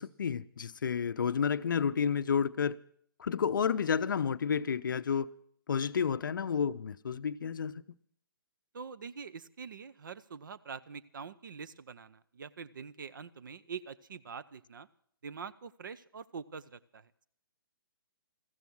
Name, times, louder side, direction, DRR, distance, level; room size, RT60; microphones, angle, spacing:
voice 1, 0.0-2.8 3.2-5.3 5.7-7.8, left 7 dB, 55° left, 0.5 m, -30 dB
voice 2, 8.7-14.9 15.2-17.3, right 6 dB, 55° right, 0.7 m, -45 dB
14.5 x 14.0 x 6.1 m
figure-of-eight pair, 130°, 12 cm